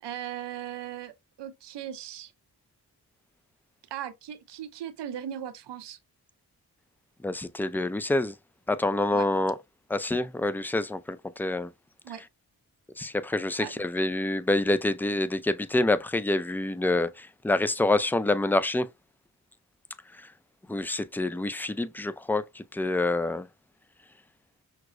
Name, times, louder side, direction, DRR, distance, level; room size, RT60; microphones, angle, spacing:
voice 1, 0.0-1.1 1.4-2.3 3.9-6.0 9.1-9.3 12.0-12.2 13.6-13.8, right 10 dB, 85° right, 0.6 m, -38 dB
voice 2, 7.2-8.3 8.7-9.6 9.9-11.7 13.0-18.9 20.2-20.3 20.7-23.5, left 2 dB, 5° left, 0.3 m, -27 dB
5.8 x 2.0 x 2.4 m
cardioid pair, 40°, 41 cm